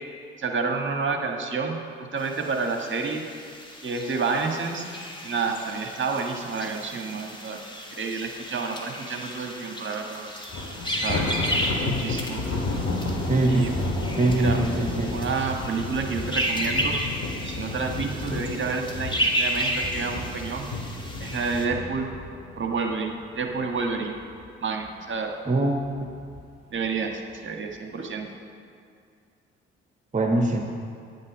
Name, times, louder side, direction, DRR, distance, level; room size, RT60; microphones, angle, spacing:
voice 1, 0.4-1.8 2.1-3.3 3.8-4.9 5.2-7.6 7.9-10.4 11.0-11.3 11.8-12.4 13.5-13.9 14.3-14.6 15.1-17.0 17.4-20.7 21.2-22.1 22.5-24.1 24.6-25.4 26.7-28.3, right 4 dB, 40° right, 2 dB, 1.5 m, -29 dB
sound 1, 2.2-21.7, equal, 15° left, 2.1 m, -33 dB
Thunder, 10.5-23.8 24.2-24.5 24.9-25.0 25.8-26.4, left 2 dB, 50° left, 2.0 m, -32 dB
voice 2, 13.3-13.7 14.2-15.1 25.5-25.8 30.1-30.6, right 2 dB, 25° right, 1 dB, 1.3 m, -22 dB
9.6 x 8.5 x 6.2 m, 2.3 s
figure-of-eight pair, 45°, 30 cm